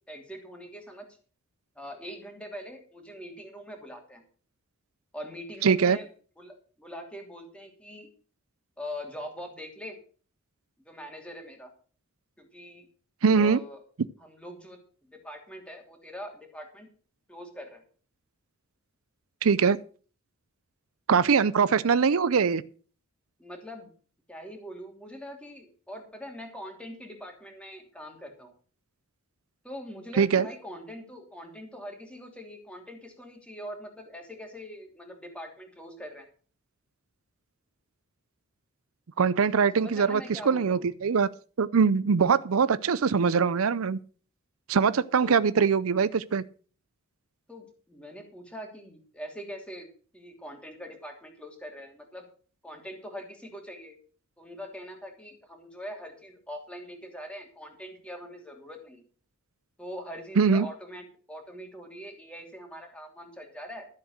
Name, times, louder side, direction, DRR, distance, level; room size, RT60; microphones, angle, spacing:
voice 1, 0.1-1.1 1.8-4.2 5.1-6.1 6.4-8.1 8.8-10.0 10.8-11.7 12.4-12.9 13.3-13.8 14.2-14.8 15.1-16.9 17.3-17.8 21.8-21.9 23.4-23.9 24.3-28.5 29.6-36.2 39.7-40.8 45.2-45.4 47.5-49.9 50.1-52.3 52.6-54.0 54.4-59.0 59.8-63.9, equal, 5° left, 2.9 m, -42 dB
voice 2, 5.6-6.0 13.2-13.6 19.4-19.8 21.1-22.6 30.2-30.5 39.2-41.3 41.6-44.0 44.7-46.4 60.4-60.7, right 6 dB, 75° right, 0.5 m, -22 dB
13.5 x 7.4 x 6.5 m
head